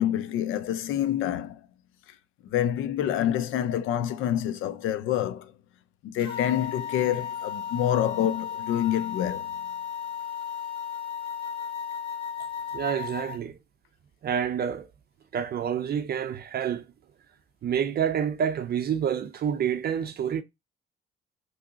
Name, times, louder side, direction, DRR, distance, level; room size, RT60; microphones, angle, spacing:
voice 1, 0.0-1.6 2.5-5.5 6.0-9.5, left 11 dB, 90° left, 0.5 m, -27 dB
sound 1, 6.2-13.4, left 8 dB, 25° left, 1.6 m, -35 dB
voice 2, 12.7-13.6 14.2-14.9 15.3-16.9 17.6-20.4, right 8 dB, 55° right, 0.5 m, -28 dB
3.5 x 2.8 x 2.7 m
cardioid pair, 90°, 20 cm